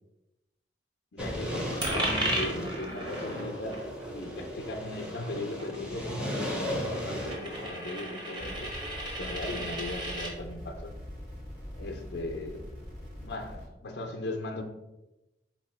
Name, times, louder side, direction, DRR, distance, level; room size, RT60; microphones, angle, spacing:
voice 1, 1.1-3.8 4.1-8.7 9.0-10.9 11.7-12.7 13.2-14.6, left 2 dB, 75° left, 0.5 m, -38 dB
sound 1, 1.2-7.7, equal, 5° right, 0.6 m, -36 dB
Coin (dropping), 1.8-10.3, right 1 dB, 25° right, 1.0 m, -36 dB
sound 2, 8.4-13.7, equal, 70° right, 1.6 m, -43 dB
4.1 x 2.8 x 4.3 m
head